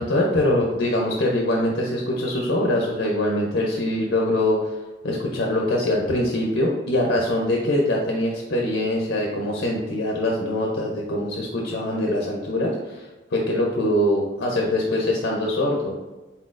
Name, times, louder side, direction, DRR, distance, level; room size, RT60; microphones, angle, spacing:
voice 1, 0.0-4.7 5.0-15.9, left 1 dB, 55° left, -1 dB, 0.6 m, -23 dB
4.1 x 4.0 x 2.5 m, 1.2 s
head